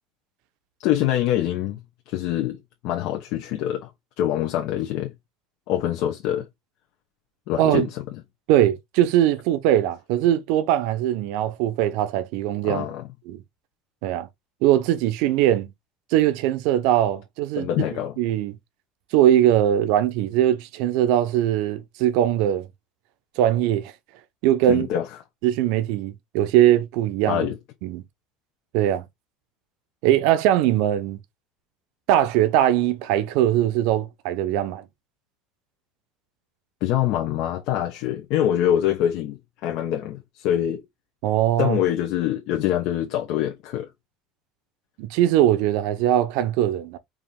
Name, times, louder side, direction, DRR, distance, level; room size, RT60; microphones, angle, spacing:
voice 1, 0.8-1.8 2.1-2.6 2.8-3.9 4.2-5.1 5.7-6.5 7.5-8.0 12.6-13.1 17.6-18.2 24.7-25.1 27.3-27.6 36.8-40.8 41.6-43.9, left 11 dB, 55° left, 0.9 m, -24 dB
voice 2, 8.5-12.9 13.3-13.4 14.0-14.3 14.6-15.7 16.1-17.9 18.2-18.5 19.1-22.7 23.4-23.9 24.4-24.9 25.4-27.5 27.8-28.0 28.7-29.1 30.0-31.2 32.1-34.8 41.2-41.8 45.0-47.0, right 12 dB, 65° right, 0.8 m, -21 dB
4.9 x 2.8 x 3.7 m
cardioid pair, 170°, 0 cm